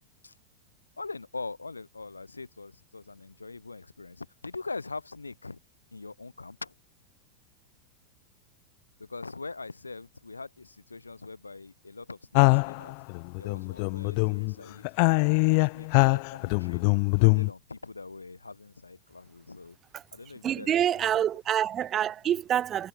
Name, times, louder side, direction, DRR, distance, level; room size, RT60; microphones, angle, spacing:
voice 1, 1.0-5.6 5.9-6.7 9.0-12.9 13.4-14.9 15.4-19.8 20.1-21.2, left 3 dB, 80° left, 4.5 m, -42 dB
sound 1, 12.3-14.5 14.8-17.5, left 38 dB, 45° left, 0.7 m, -23 dB
voice 2, 20.4-22.9, right 10 dB, 30° right, 1.2 m, -26 dB
figure-of-eight pair, 90°, 0 cm